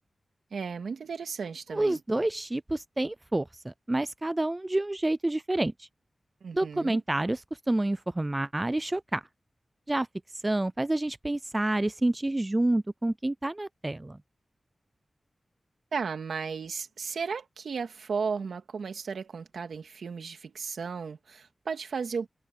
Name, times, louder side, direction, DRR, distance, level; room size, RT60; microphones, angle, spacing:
voice 1, 0.5-2.0 6.4-7.0 15.9-22.3, right 5 dB, 90° right, 2.0 m, -35 dB
voice 2, 1.7-5.9 6.5-7.4 7.7-9.2 9.9-10.1 10.3-14.2, right 1 dB, 25° right, 0.3 m, -28 dB
cardioid pair, 45°, 0 cm